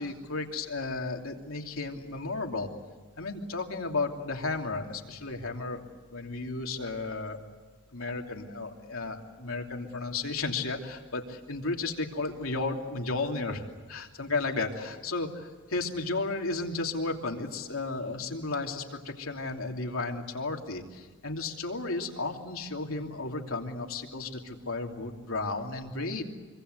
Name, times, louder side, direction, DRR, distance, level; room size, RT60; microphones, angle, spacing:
voice 1, 0.0-2.7 3.2-5.8 6.1-7.4 7.9-13.6 13.9-26.2, left 3 dB, 80° left, 2 dB, 3.0 m, -33 dB
25.5 x 25.0 x 8.1 m, 1.4 s
head